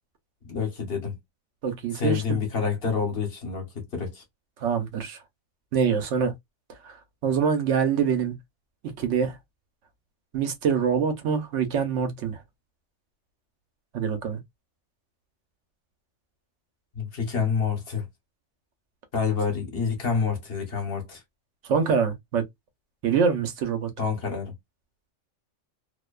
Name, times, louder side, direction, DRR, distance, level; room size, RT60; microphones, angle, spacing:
voice 1, 0.4-1.2 1.9-4.2 17.0-18.1 19.1-21.2 24.0-24.5, left 5 dB, 55° left, 1.1 m, -28 dB
voice 2, 1.6-2.4 4.6-5.2 5.7-6.3 6.8-7.0 7.2-8.4 8.8-9.4 10.3-12.4 13.9-14.4 21.7-22.4 23.0-23.9, right 6 dB, 75° right, 1.0 m, -25 dB
2.6 x 2.1 x 2.2 m
omnidirectional pair, 1.3 m